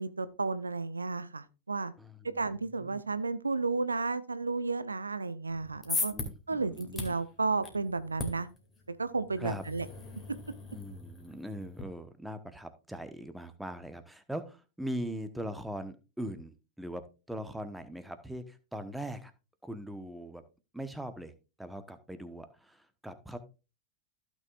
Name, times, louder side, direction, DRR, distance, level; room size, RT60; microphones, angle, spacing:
voice 1, 0.0-1.9 2.2-6.1 6.5-8.5 9.0-9.9, right 3 dB, 80° right, 15 dB, 0.6 m, -32 dB
voice 2, 2.0-2.4 2.8-3.0 6.1-7.1 9.4-9.6 10.7-17.0 17.3-19.3 19.6-20.4 20.7-21.3 21.6-23.4, equal, 5° right, 9 dB, 1.1 m, -41 dB
sound 1, 5.5-11.8, left 3 dB, 15° left, 2.4 m, -40 dB
15.0 x 6.2 x 2.5 m, 0.30 s
figure-of-eight pair, 90°, 0 cm